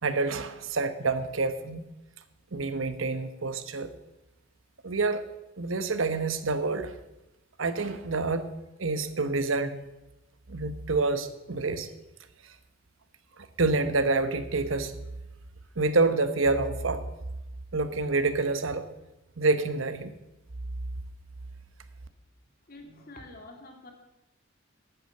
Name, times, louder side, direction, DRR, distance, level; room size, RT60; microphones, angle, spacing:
voice 1, 0.0-1.9 2.5-3.9 4.8-5.3 5.6-6.9 7.6-8.5 8.8-9.9 10.5-11.9 12.4-12.6 13.4-15.0 15.8-17.1 17.7-18.8 19.4-20.1, right 3 dB, 75° right, 11 dB, 1.0 m, -27 dB
voice 2, 22.7-23.9, left 2 dB, 50° left, 3 dB, 2.5 m, -47 dB
12.0 x 8.6 x 7.8 m, 0.98 s
head